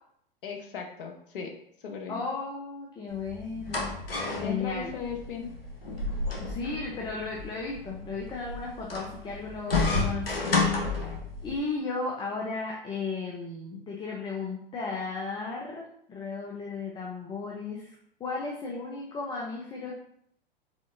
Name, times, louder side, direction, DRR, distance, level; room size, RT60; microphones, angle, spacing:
voice 1, 0.4-1.5 1.8-2.2 4.3-5.5, left 5 dB, 65° left, 3 dB, 1.0 m, -37 dB
voice 2, 2.1-4.9 6.4-10.5 10.8-11.1 11.4-20.0, left 4 dB, 15° left, -1 dB, 0.7 m, -35 dB
sound 1, 3.1-11.6, left 3 dB, 85° left, 1.1 m, -31 dB
5.0 x 4.0 x 2.6 m, 0.70 s
figure-of-eight pair, 100°, 29 cm